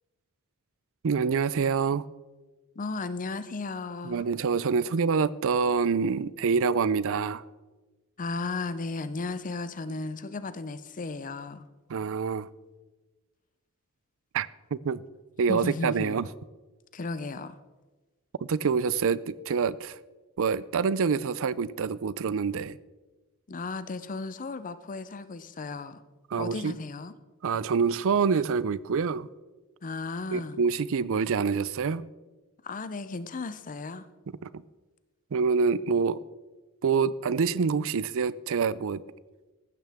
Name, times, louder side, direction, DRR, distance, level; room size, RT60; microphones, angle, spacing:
voice 1, 1.0-2.0 4.0-7.4 11.9-12.5 14.3-15.0 15.4-16.3 18.5-20.0 20.4-22.8 26.3-26.8 27.4-29.3 30.3-32.0 34.4-34.6 35.3-36.2 36.8-39.0, right 5 dB, 65° right, 0.5 m, -26 dB
voice 2, 2.8-4.2 8.2-11.7 15.5-16.2 16.9-17.6 23.5-26.0 26.4-27.1 29.8-30.6 32.6-34.1, left 3 dB, 35° left, 0.6 m, -35 dB
15.5 x 12.5 x 3.5 m
head